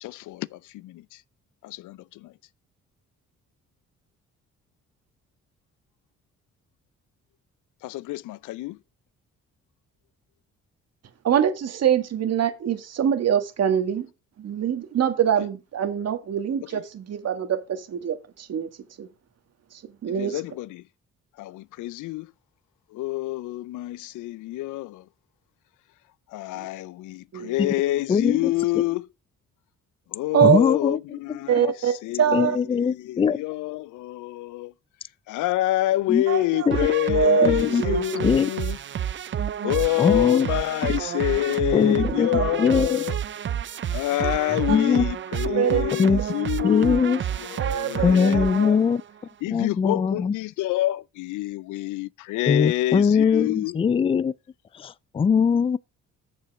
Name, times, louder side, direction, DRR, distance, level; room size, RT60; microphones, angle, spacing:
voice 1, 0.0-1.0 1.6-2.3 7.8-8.8 20.2-20.7 21.4-22.3 22.9-25.0 26.3-29.1 30.1-31.6 32.0-32.2 32.8-34.7 35.3-38.8 39.6-43.2 43.9-48.8 49.4-53.8, left 17 dB, 80° left, 0.5 m, -27 dB
voice 2, 11.2-14.1 14.4-18.7 19.0-19.1 19.7-20.4 26.5-26.7 27.3-27.6 30.3-30.6 31.5-32.6 36.3-36.7 37.1-38.2 42.1-42.5 44.7-44.8 45.5-45.8 47.6-48.3, right 9 dB, 55° right, 1.6 m, -24 dB
voice 3, 28.1-28.9 30.4-31.0 31.3-31.4 32.3-33.4 36.1-36.2 36.7-36.8 37.4-37.8 38.2-38.5 40.0-40.5 41.7-43.0 44.7-45.1 46.0-46.2 46.6-47.2 48.0-49.0 49.5-50.3 52.5-54.3 54.8-55.8, left 6 dB, 20° left, 0.3 m, -21 dB
sound 1, 36.7-49.1, right 9 dB, 40° right, 0.5 m, -29 dB
7.0 x 5.5 x 6.0 m
cardioid pair, 90°, 30 cm